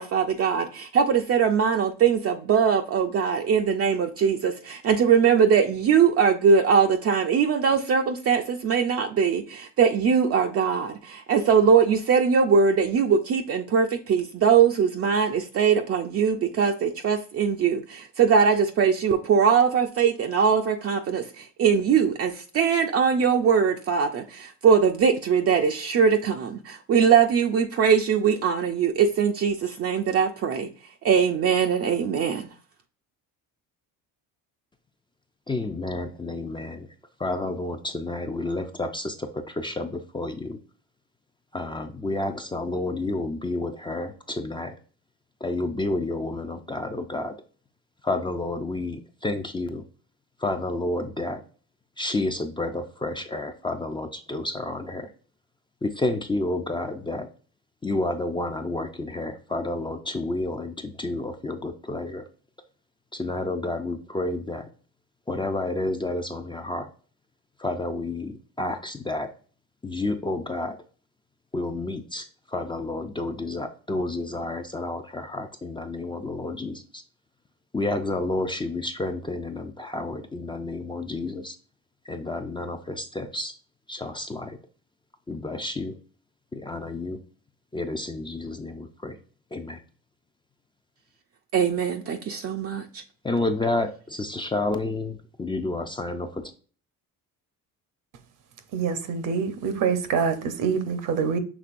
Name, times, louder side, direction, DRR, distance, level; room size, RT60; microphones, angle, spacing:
voice 1, 0.0-30.7 31.0-32.5 91.5-92.8, right 6 dB, 40° right, 0.5 m, -21 dB
voice 2, 35.5-36.9 37.2-40.6 41.5-44.7 45.4-47.3 48.0-49.8 50.4-51.4 52.0-55.1 55.8-57.3 57.8-62.2 63.1-64.7 65.3-66.9 67.6-69.3 69.8-70.8 71.5-72.3 72.5-76.8 77.7-81.6 82.1-83.5 83.9-84.6 85.3-86.0 86.5-87.2 87.7-89.2 89.5-89.8 93.2-96.4, left 2 dB, 15° left, 0.4 m, -30 dB
voice 3, 98.7-101.4, right 6 dB, 65° right, 0.8 m, -25 dB
6.1 x 3.2 x 2.5 m
cardioid pair, 95°, 35 cm